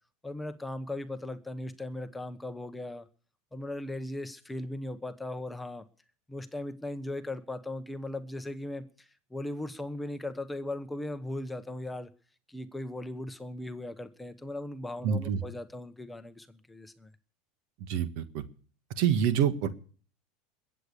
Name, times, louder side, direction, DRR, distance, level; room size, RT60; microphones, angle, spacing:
voice 1, 0.2-3.1 3.5-5.8 6.3-12.1 12.5-17.1, left 1 dB, 5° left, 9 dB, 1.1 m, -38 dB
voice 2, 15.0-15.4 17.9-18.4 19.0-19.7, right 8 dB, 65° right, 10 dB, 1.6 m, -26 dB
21.5 x 8.4 x 6.9 m, 0.43 s
supercardioid pair, 120°, 0 cm